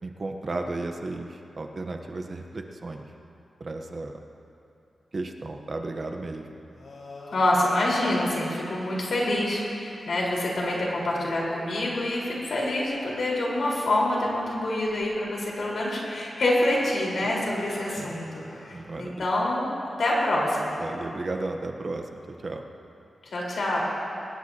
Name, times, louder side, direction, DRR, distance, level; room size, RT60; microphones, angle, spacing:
voice 1, 0.0-3.1 3.6-4.2 5.1-6.5 18.0-18.2 18.7-19.2 20.8-22.6, right 2 dB, 35° right, 4 dB, 0.9 m, -34 dB
sound 1, 6.7-10.0 11.0-11.4 11.9-12.3 12.9-13.0 13.4-13.6 14.2-15.2 16.3-19.3, left 2 dB, 90° left, 4.3 m, -47 dB
voice 2, 7.3-19.7 20.0-20.7 23.3-23.8, left 1 dB, 60° left, -4 dB, 4.3 m, -26 dB
22.5 x 20.0 x 2.9 m, 2.7 s
wide cardioid pair, 165°, 0 cm